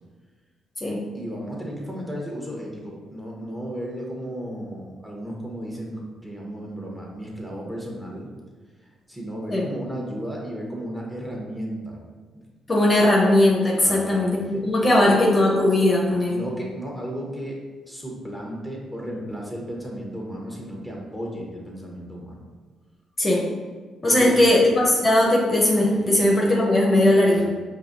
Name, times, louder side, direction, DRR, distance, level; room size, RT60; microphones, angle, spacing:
voice 1, 1.1-8.3 9.1-12.0 13.7-14.2 14.4-15.1 15.9-16.0 16.3-17.6 17.9-22.4 24.0-24.5 25.9-26.1 27.3-27.4, equal, 10° right, -2 dB, 1.1 m, -34 dB
voice 2, 12.7-16.4 23.2-23.4 24.0-27.4, left 1 dB, 30° left, -3 dB, 0.7 m, -19 dB
4.8 x 2.7 x 2.6 m, 1.4 s
supercardioid pair, 70°, 0 cm